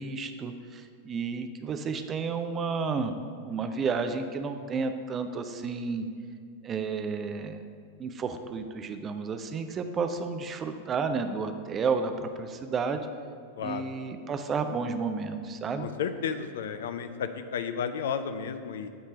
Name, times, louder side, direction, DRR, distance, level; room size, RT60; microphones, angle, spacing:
voice 1, 0.0-3.2 3.5-6.1 6.6-7.6 8.0-13.1 13.6-15.9, right 5 dB, 25° right, 8 dB, 0.5 m, -31 dB
voice 2, 13.6-13.9 15.8-18.9, left 7 dB, 60° left, 10 dB, 0.4 m, -32 dB
8.9 x 3.3 x 6.3 m, 2.2 s
figure-of-eight pair, 90°, 0 cm